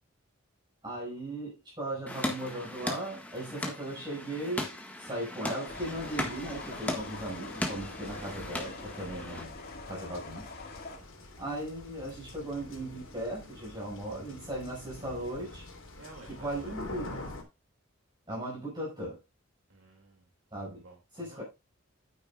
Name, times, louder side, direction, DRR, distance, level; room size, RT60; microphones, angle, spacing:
voice 1, 0.8-4.7 5.0-9.6 9.9-10.5 11.4-15.7 16.3-17.2 18.3-19.2 20.5-20.8 21.1-21.4, right 1 dB, 20° right, 5.3 m, -37 dB
sound 1, 2.1-9.4, left 1 dB, 5° left, 1.5 m, -38 dB
sound 2, 5.5-11.0, left 3 dB, 45° left, 2.0 m, -45 dB
sound 3, 5.7-17.4, left 2 dB, 65° left, 2.9 m, -46 dB
voice 2, 9.1-9.5 11.0-11.3 16.0-17.2 19.7-20.3 20.7-21.4, right 3 dB, 70° right, 2.4 m, -53 dB
10.0 x 9.3 x 2.4 m
head